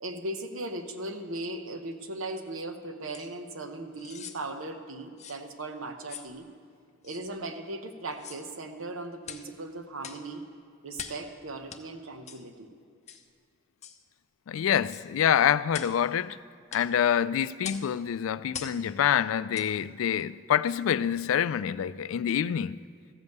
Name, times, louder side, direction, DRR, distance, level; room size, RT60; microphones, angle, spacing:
voice 1, 0.0-6.5 7.0-10.4 10.8-12.7, right 2 dB, 85° right, 0.9 m, -38 dB
sound 1, 3.1-3.3 4.0-4.4 5.2-5.4 6.1-6.3 7.0-7.2 8.1-8.5 9.2-9.5 10.0-10.3 10.9-11.3 11.7-11.8 12.3-12.4 13.1-13.3 13.8-14.0 14.9-15.1 15.7-16.0 16.7-16.9 17.6-17.9 18.5-18.8 19.5-19.7 20.2-20.3, left 7 dB, 35° left, 0.7 m, -42 dB
voice 2, 14.5-16.4 16.7-22.8, left 9 dB, 85° left, 0.3 m, -26 dB
14.0 x 5.4 x 7.9 m
head